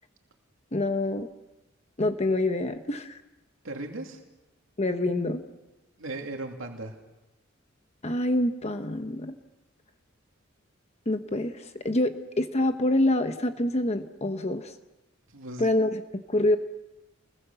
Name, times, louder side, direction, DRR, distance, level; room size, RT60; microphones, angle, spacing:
voice 1, 0.7-1.3 2.0-3.2 4.8-5.4 8.0-9.3 11.1-14.7 15.6-16.6, left 1 dB, 30° left, 7 dB, 1.1 m, -26 dB
voice 2, 3.6-4.2 6.0-7.0 15.3-15.8, right 2 dB, 70° right, 2 dB, 2.7 m, -37 dB
29.0 x 21.5 x 7.0 m, 1.0 s
head